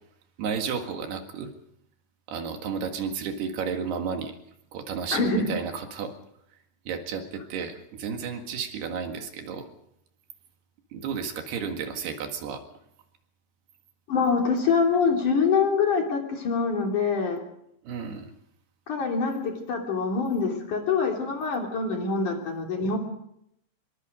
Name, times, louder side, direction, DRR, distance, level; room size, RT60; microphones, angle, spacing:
voice 1, 0.4-1.5 2.3-4.4 4.7-6.1 6.9-9.7 10.9-12.6 17.8-18.3, right 6 dB, 75° right, 5 dB, 3.8 m, -32 dB
voice 2, 5.1-5.4 14.1-17.4 18.9-23.0, left 5 dB, 50° left, 1 dB, 4.4 m, -25 dB
25.0 x 22.5 x 5.2 m, 0.75 s
omnidirectional pair, 4.8 m